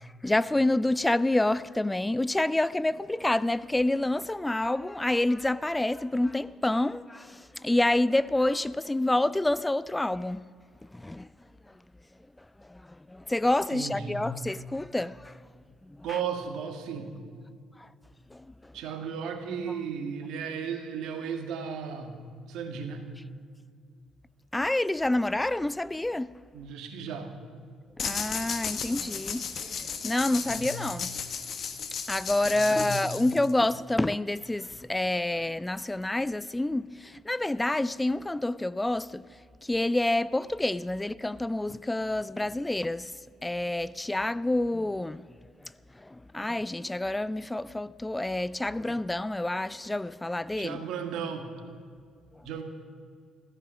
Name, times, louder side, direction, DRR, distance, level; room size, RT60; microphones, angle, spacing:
voice 1, 0.0-10.4 10.9-11.3 12.7-12.8 13.1-15.4 15.9-16.0 17.8-17.9 18.3-18.7 24.5-26.3 28.0-31.1 32.1-39.2 39.6-43.1 43.4-45.3 46.0-50.8, left 1 dB, 15° left, 0.4 m, -28 dB
voice 2, 13.7-14.2 16.0-17.1 18.7-22.1 22.5-23.0 26.5-27.3 30.4-30.8 32.5-33.1 50.6-51.5 52.4-52.6, right 6 dB, 70° right, 1.8 m, -35 dB
sound 1, 28.0-33.7, left 6 dB, 55° left, 1.4 m, -35 dB
14.0 x 14.0 x 6.3 m
hypercardioid pair, 50°, 0 cm